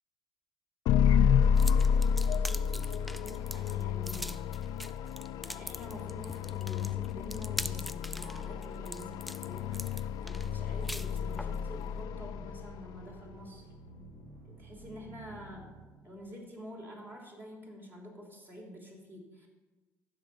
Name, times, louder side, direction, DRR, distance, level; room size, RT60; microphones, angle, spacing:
sound 1, 0.9-13.0, left 7 dB, 70° left, 0.4 m, -30 dB
sound 2, 1.5-11.6, equal, ahead, 0.4 m, -43 dB
voice 1, 2.3-5.0 5.3-13.7 14.4-15.7 16.0-19.5, equal, 30° right, 0 dB, 3.3 m, -48 dB
sound 3, 10.0-16.3, right 2 dB, 90° right, 1.9 m, -53 dB
14.5 x 5.9 x 5.4 m, 1.3 s
supercardioid pair, 65°, 7 cm